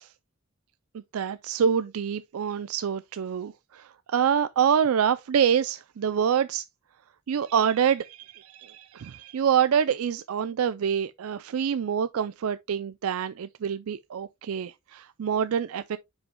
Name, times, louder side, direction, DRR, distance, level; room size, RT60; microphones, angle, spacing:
voice 1, 0.9-6.6 7.3-16.0, right 8 dB, 80° right, 0.4 m, -26 dB
9.6 x 5.5 x 2.2 m
head